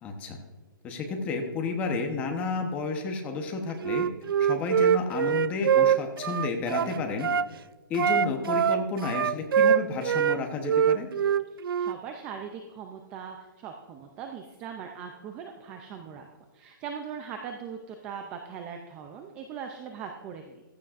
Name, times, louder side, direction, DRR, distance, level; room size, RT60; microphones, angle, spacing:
voice 1, 0.0-0.4 0.8-4.1 4.4-7.3 7.9-11.1, left 4 dB, 10° left, 4 dB, 0.9 m, -31 dB
Wind instrument woodwind instrument, 3.8-7.5 7.9-10.4 10.7-12.0, right 8 dB, 85° right, 0.4 m, -24 dB
voice 2, 11.8-16.3 16.5-20.6, right 7 dB, 10° right, 5 dB, 0.3 m, -40 dB
15.0 x 14.0 x 2.5 m, 1.2 s
hypercardioid pair, 170°, 12 cm